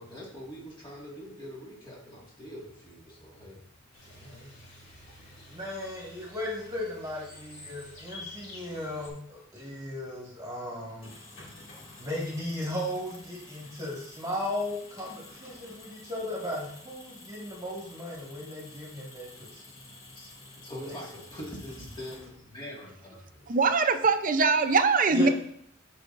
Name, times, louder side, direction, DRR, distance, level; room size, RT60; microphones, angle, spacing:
voice 1, 0.0-3.7 4.0-5.4 19.6-23.6, equal, 25° left, -4 dB, 1.9 m, -44 dB
sound 1, 3.9-9.1, left 2 dB, 55° left, 2.9 m, -49 dB
voice 2, 5.5-11.1 12.0-19.6 20.8-21.0 25.1-25.3, left 1 dB, 20° right, -4 dB, 1.8 m, -36 dB
sound 2, 10.8-22.6, left 2 dB, 80° left, 2.7 m, -51 dB
voice 3, 23.5-25.3, right 4 dB, 45° right, 8 dB, 0.6 m, -22 dB
13.5 x 5.0 x 2.6 m, 0.68 s
head